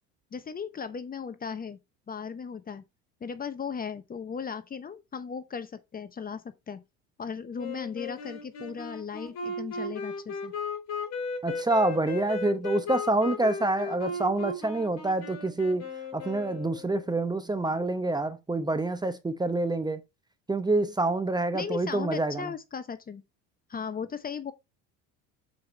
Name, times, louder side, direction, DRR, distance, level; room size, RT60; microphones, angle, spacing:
voice 1, 0.3-1.8 2.1-2.8 3.2-6.8 7.2-10.5 21.5-23.2 23.7-24.5, left 6 dB, 25° left, 0.8 m, -37 dB
Wind instrument woodwind instrument, 7.6-17.0, left 3 dB, 45° left, 3.9 m, -36 dB
voice 2, 11.4-15.8 16.1-20.0 20.5-22.5, right 2 dB, 10° right, 0.8 m, -27 dB
6.8 x 5.0 x 4.3 m
supercardioid pair, 105°, 38 cm